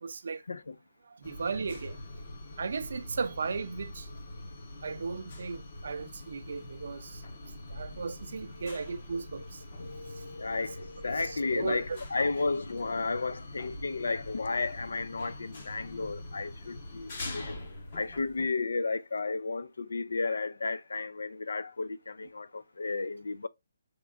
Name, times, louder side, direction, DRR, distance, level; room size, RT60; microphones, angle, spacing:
voice 1, 0.0-0.4 1.1-2.0 2.6-4.1 4.8-7.2 7.7-9.6 10.1-10.2 11.3-12.0, right 5 dB, 50° right, 0.4 m, -36 dB
sound 1, 1.2-18.5, left 2 dB, 30° left, 0.7 m, -44 dB
voice 2, 9.8-17.6 17.9-23.5, left 3 dB, 80° left, 0.4 m, -33 dB
5.7 x 3.6 x 2.4 m
hypercardioid pair, 180°, 0 cm